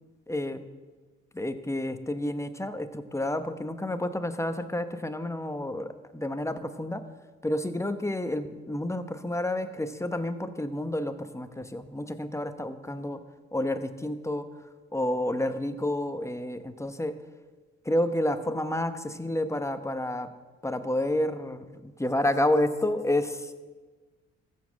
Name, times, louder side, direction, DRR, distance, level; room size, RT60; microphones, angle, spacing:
voice 1, 0.3-0.6 1.3-7.0 7.4-13.2 13.5-14.4 14.9-17.1 17.8-20.3 20.6-23.5, left 1 dB, 10° left, 9 dB, 1.0 m, -30 dB
14.0 x 7.5 x 7.5 m, 1.3 s
cardioid pair, 90°, 30 cm